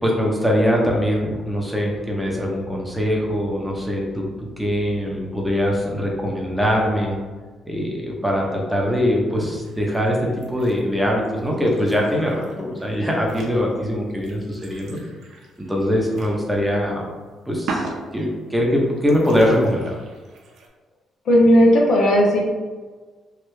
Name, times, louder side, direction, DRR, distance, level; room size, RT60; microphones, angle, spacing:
voice 1, 0.0-4.3 4.6-7.2 7.7-10.2 10.5-15.0 15.7-17.0 17.5-19.9, equal, 5° right, -2 dB, 0.7 m, -22 dB
sound 1, 9.6-10.8 11.2-16.5 16.7-16.8 17.6-18.6 19.0-20.7, right 3 dB, 70° right, 0.5 m, -38 dB
voice 2, 21.3-22.4, equal, 70° left, -2 dB, 0.7 m, -14 dB
3.2 x 2.3 x 3.1 m, 1.4 s
cardioid pair, 90°, 0 cm